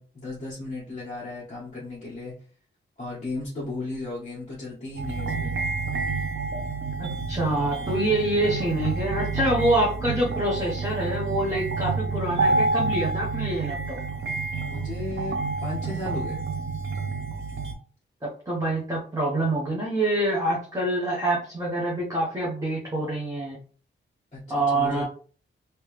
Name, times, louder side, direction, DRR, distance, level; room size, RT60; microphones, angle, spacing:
voice 1, 0.0-2.3 3.0-5.5 14.6-16.4 24.3-25.1, left 2 dB, 30° left, -8 dB, 1.5 m, -35 dB
sound 1, 5.0-17.7, right 3 dB, 65° right, 0.7 m, -29 dB
voice 2, 7.0-14.0 18.2-23.6 24.5-25.1, right 1 dB, 15° right, -5 dB, 0.9 m, -26 dB
3.3 x 3.0 x 3.1 m, 0.42 s
wide cardioid pair, 145°, 21 cm